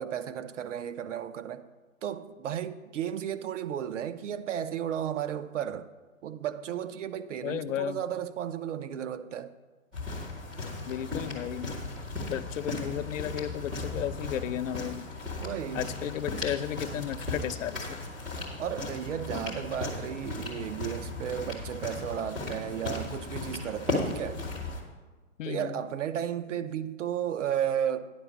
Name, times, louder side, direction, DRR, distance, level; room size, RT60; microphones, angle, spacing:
voice 1, 0.0-1.6 2.0-5.9 6.2-9.5 15.4-15.8 18.6-24.4 25.4-28.0, right 9 dB, 65° right, 0.7 m, -34 dB
voice 2, 7.4-8.0 10.9-11.7 12.3-15.1 15.7-18.0 25.4-25.8, left 11 dB, 70° left, 0.6 m, -34 dB
sound 1, 9.9-24.8, left 2 dB, ahead, 0.3 m, -36 dB
9.7 x 5.0 x 7.1 m
hypercardioid pair, 140°, 40 cm